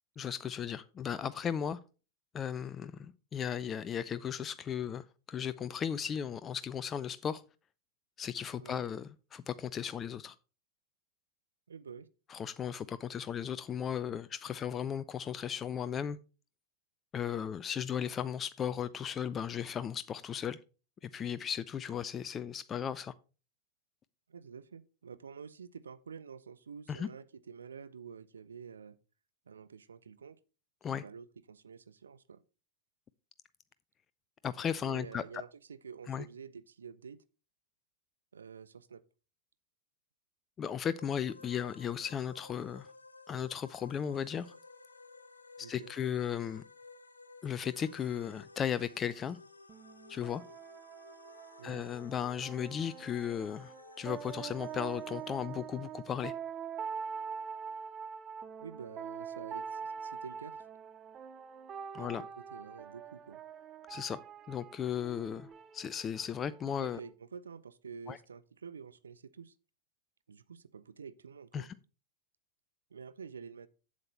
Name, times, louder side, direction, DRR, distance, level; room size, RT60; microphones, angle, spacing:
voice 1, 0.2-1.8 2.3-7.4 8.2-10.3 12.3-16.2 17.1-20.6 21.0-23.1 26.9-27.1 30.8-31.0 34.4-35.2 36.1-36.2 40.6-42.9 43.3-44.5 45.6-46.6 47.4-49.4 50.1-50.4 51.6-56.3 61.9-62.2 63.9-64.2 64.5-67.0 68.1-68.2 71.5-71.7, left 8 dB, 25° left, 0.4 m, -36 dB
voice 2, 11.7-12.1 24.3-29.0 29.5-30.4 30.9-32.4 34.8-37.2 38.3-39.0 45.6-45.9 51.6-51.9 58.6-60.6 62.0-63.4 66.6-69.6 70.3-71.7 72.9-73.7, right 6 dB, 70° right, 0.6 m, -48 dB
sound 1, 40.9-56.3, left 3 dB, 80° left, 0.7 m, -56 dB
sound 2, 49.7-67.1, right 7 dB, 30° right, 0.6 m, -44 dB
7.8 x 7.4 x 4.3 m
figure-of-eight pair, 90°, 0 cm